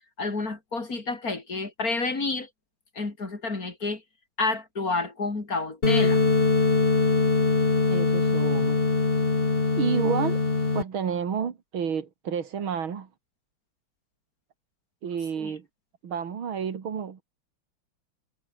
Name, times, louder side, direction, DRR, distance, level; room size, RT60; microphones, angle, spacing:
voice 1, 0.2-2.5 3.0-4.0 4.4-6.2 15.4-15.5, left 3 dB, 45° left, 4.0 m, -29 dB
sound 1, 5.8-10.8, left 3 dB, 30° left, 2.3 m, -22 dB
voice 2, 7.9-8.8 9.8-10.4 10.7-13.1 15.0-15.6 16.0-17.2, right 7 dB, 80° right, 2.9 m, -30 dB
omnidirectional pair, 2.2 m